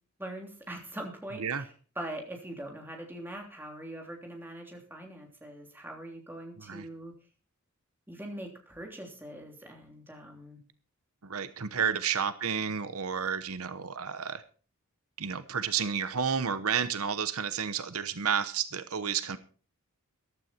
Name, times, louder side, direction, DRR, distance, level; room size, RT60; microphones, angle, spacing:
voice 1, 0.2-7.1 8.1-10.6, right 1 dB, 10° right, 2 dB, 3.2 m, -42 dB
voice 2, 11.2-14.4 15.2-19.4, right 7 dB, 75° right, 12 dB, 1.0 m, -31 dB
14.5 x 12.5 x 4.5 m, 0.39 s
head